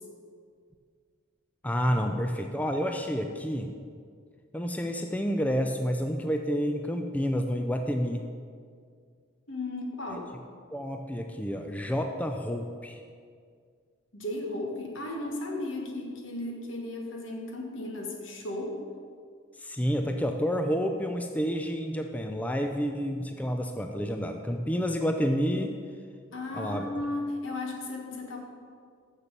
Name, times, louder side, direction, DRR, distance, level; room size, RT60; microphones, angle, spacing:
voice 1, 1.6-3.7 4.5-8.2 10.1-10.2 10.7-13.0 19.6-25.8 26.5-26.8, equal, 5° left, 4 dB, 0.4 m, -29 dB
voice 2, 9.5-10.3 14.1-18.8 26.3-28.4, left 2 dB, 80° left, 1 dB, 1.6 m, -35 dB
7.3 x 6.8 x 6.7 m, 2.1 s
head